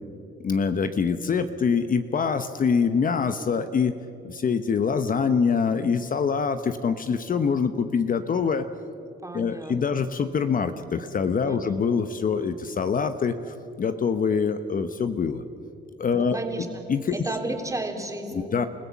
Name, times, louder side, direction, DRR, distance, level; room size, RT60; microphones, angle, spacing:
voice 1, 0.4-4.0 4.2-8.7 9.3-15.4 16.0-17.1 18.3-18.7, left 6 dB, 45° left, 10 dB, 1.0 m, -25 dB
voice 2, 9.2-10.0 11.4-11.8 16.1-16.7 17.1-18.5, right 2 dB, 15° right, 3 dB, 3.2 m, -33 dB
29.0 x 16.0 x 7.1 m, 2.7 s
cardioid pair, 90°, 20 cm